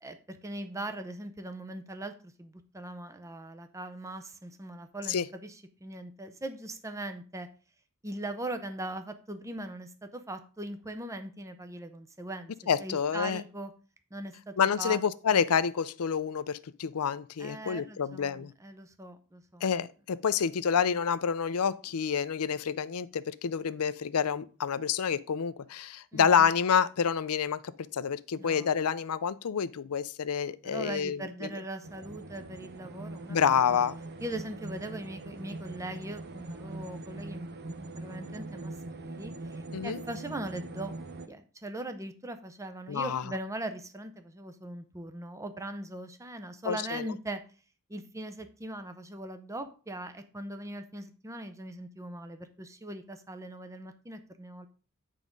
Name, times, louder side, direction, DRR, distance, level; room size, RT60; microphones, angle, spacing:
voice 1, 0.0-7.5 8.0-12.5 12.8-13.7 14.1-15.0 15.3-15.4 17.4-19.6 26.1-26.5 28.4-28.7 30.6-33.8 34.2-41.0 41.3-47.4 47.9-54.7, right 1 dB, 15° right, 0.6 m, -40 dB
voice 2, 12.7-13.4 14.6-18.5 19.6-31.5 33.3-33.9 39.7-40.0 42.9-43.2 46.6-47.1, left 7 dB, 70° left, 0.5 m, -28 dB
sound 1, 31.8-41.3, right 2 dB, 50° right, 0.7 m, -42 dB
9.2 x 3.6 x 5.3 m
head